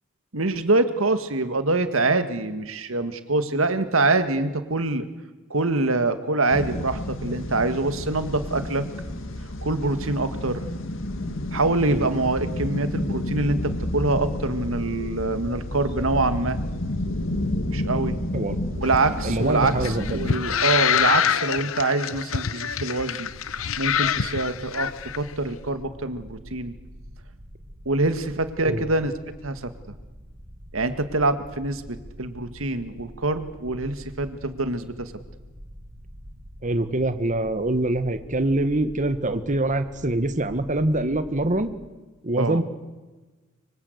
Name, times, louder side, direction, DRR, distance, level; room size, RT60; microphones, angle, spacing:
voice 1, 0.3-5.1 5.5-8.9 9.6-10.7 11.5-16.6 17.7-18.2 18.8-23.3 23.8-24.9 25.1-26.7 27.9-29.1 29.4-29.7 30.7-35.1 42.4-42.6, right 2 dB, 80° right, 10 dB, 1.9 m, -25 dB
sound 1, 6.5-20.4, left 1 dB, 65° left, 2.1 m, -30 dB
sound 2, 18.8-25.2, left 8 dB, 85° left, 0.8 m, -25 dB
voice 2, 19.2-20.2 28.6-28.9 36.6-41.7 42.2-42.6, right 1 dB, 40° right, 10 dB, 1.6 m, -24 dB
sound 3, 23.2-41.7, equal, 55° right, 5.1 m, -45 dB
25.0 x 24.5 x 8.1 m, 1.2 s
head